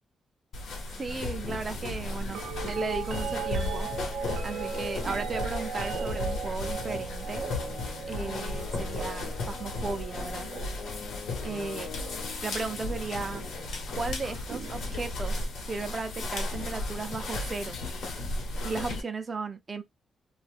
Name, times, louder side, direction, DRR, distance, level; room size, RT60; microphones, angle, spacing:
sound 1, 0.5-19.0, left 2 dB, 80° left, 1.0 m, -35 dB
voice 1, 1.0-3.9 4.4-7.4 8.1-10.5 11.4-11.9 12.4-13.4 13.9-15.4 15.7-17.8 18.6-19.8, right 4 dB, 30° right, 0.5 m, -35 dB
sound 2, 2.3-12.4 13.3-13.8 14.5-15.5 17.3-17.4, right 5 dB, 75° right, 0.6 m, -38 dB
sound 3, 7.2-14.2, left 7 dB, 65° left, 0.4 m, -45 dB
2.7 x 2.3 x 3.3 m
wide cardioid pair, 155°, 0 cm